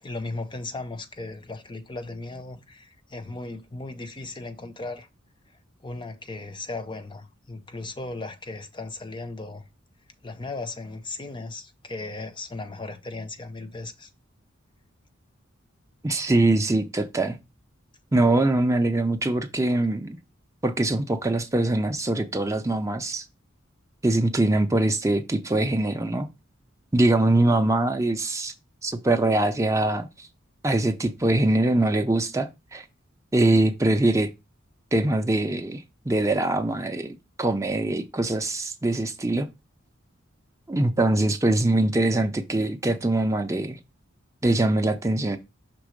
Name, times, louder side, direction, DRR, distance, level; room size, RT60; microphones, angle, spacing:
voice 1, 0.0-5.1 5.8-9.7 10.2-14.1, left 2 dB, 25° left, 0.6 m, -36 dB
voice 2, 16.0-17.4 18.1-20.2 20.6-23.2 24.0-26.3 26.9-28.5 28.8-30.3 30.6-32.8 33.3-34.3 34.9-39.5 40.7-43.8 44.4-45.4, right 2 dB, 15° right, 0.5 m, -23 dB
6.0 x 3.6 x 5.0 m
head